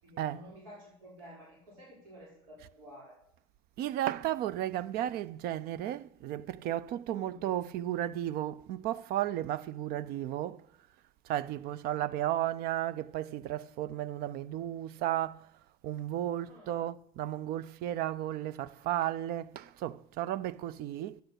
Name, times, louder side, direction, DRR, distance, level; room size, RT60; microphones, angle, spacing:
voice 1, 0.0-3.2 7.1-7.5 11.9-12.1 16.5-16.8, equal, 85° right, 4.7 m, -52 dB
voice 2, 3.8-10.6 11.3-15.4 15.8-21.2, right 12 dB, 60° right, 0.5 m, -34 dB
8.1 x 6.5 x 8.0 m
supercardioid pair, 85°, 18 cm